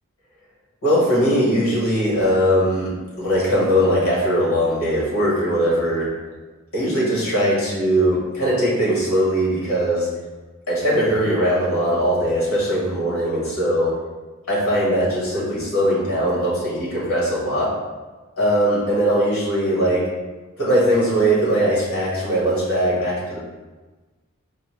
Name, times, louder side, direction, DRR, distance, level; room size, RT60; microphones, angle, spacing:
voice 1, 0.8-2.9 3.2-6.1 6.7-10.1 10.7-13.9 14.5-17.7 18.4-20.1 20.6-23.4, equal, 80° left, -6 dB, 1.5 m, -20 dB
4.9 x 2.1 x 3.0 m, 1.3 s
head